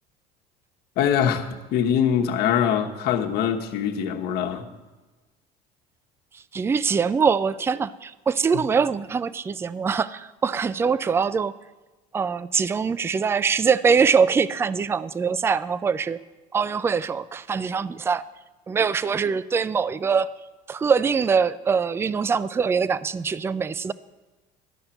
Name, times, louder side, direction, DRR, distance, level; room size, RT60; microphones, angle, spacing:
voice 1, 1.0-4.7 8.5-8.6, left 8 dB, 65° left, 4 dB, 1.2 m, -23 dB
voice 2, 6.5-11.5 12.1-16.2 16.5-18.3 18.7-20.3 20.7-23.9, right 6 dB, 15° right, 17 dB, 0.3 m, -23 dB
12.0 x 5.7 x 8.9 m, 1.2 s
cardioid pair, 120°, 18 cm